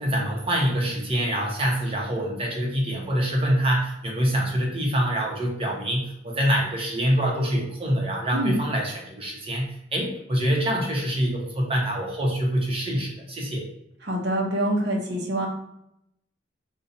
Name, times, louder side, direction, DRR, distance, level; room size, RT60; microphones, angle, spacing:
voice 1, 0.0-13.7, equal, 30° right, -1 dB, 0.8 m, -25 dB
voice 2, 14.0-15.5, right 1 dB, 60° right, 0 dB, 0.8 m, -25 dB
2.6 x 2.4 x 4.1 m, 0.79 s
head